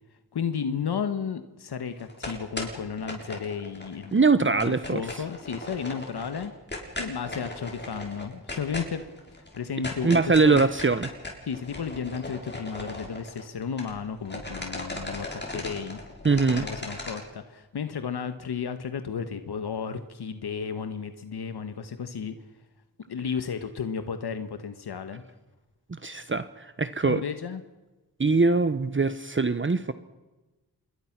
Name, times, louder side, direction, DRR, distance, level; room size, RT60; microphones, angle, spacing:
voice 1, 0.3-4.2 4.6-6.5 7.0-9.0 9.5-10.7 11.4-16.0 16.5-22.4 23.1-25.2 27.0-27.6, left 6 dB, 80° left, 9 dB, 1.5 m, -33 dB
sound 1, 2.0-4.1 4.4-14.0 14.2-17.2, left 2 dB, 30° left, 6.4 m, -37 dB
voice 2, 4.1-5.2 10.0-11.1 16.2-16.6 25.9-27.2 28.2-29.9, right 4 dB, 30° right, 12 dB, 1.2 m, -22 dB
27.0 x 22.0 x 6.1 m, 1.1 s
wide cardioid pair, 75°, 38 cm